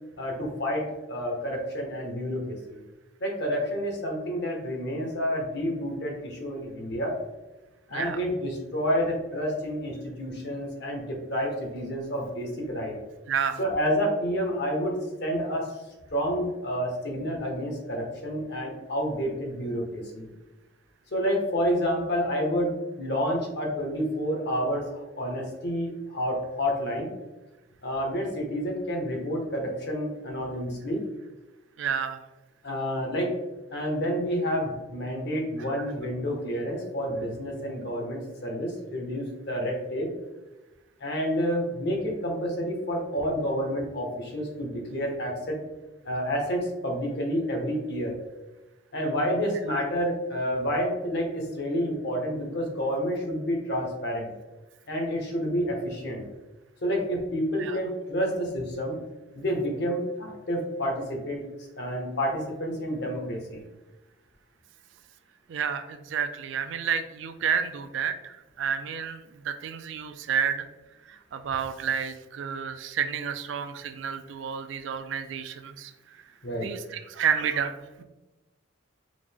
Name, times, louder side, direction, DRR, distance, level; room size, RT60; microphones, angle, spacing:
voice 1, 0.2-2.8 3.2-7.2 7.9-12.9 13.6-15.7 16.1-20.3 21.1-27.1 27.8-31.0 32.6-33.4 33.7-40.1 41.0-45.6 46.0-48.2 48.9-54.3 54.9-56.2 56.8-59.0 59.3-61.4 61.8-63.6 76.4-76.7, equal, 55° left, 1 dB, 0.9 m, -29 dB
voice 2, 13.3-13.6 31.8-32.2 49.7-49.8 57.6-57.8 65.5-70.7 71.1-75.9 76.6-78.0, right 7 dB, 65° right, 9 dB, 0.3 m, -30 dB
4.9 x 2.1 x 3.4 m, 1.1 s
head